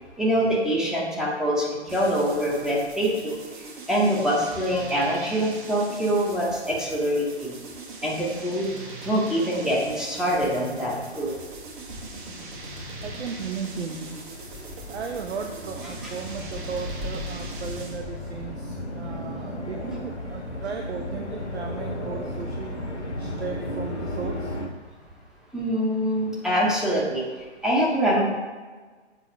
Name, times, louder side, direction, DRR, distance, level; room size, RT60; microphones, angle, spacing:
voice 1, 0.2-3.4 3.9-7.5 8.0-8.7 9.0-11.3 16.0-16.5 25.5-27.2 27.6-28.2, equal, ahead, -4 dB, 0.7 m, -24 dB
sound 1, 1.9-18.1, right 3 dB, 45° right, 1.3 m, -41 dB
sound 2, 8.3-8.4 8.9-24.7, left 1 dB, 85° left, 1.2 m, -35 dB
voice 2, 13.0-14.2 14.9-22.8 23.2-24.5, right 6 dB, 70° right, 3 dB, 0.7 m, -35 dB
6.9 x 3.9 x 4.4 m, 1.4 s
figure-of-eight pair, 125°, 34 cm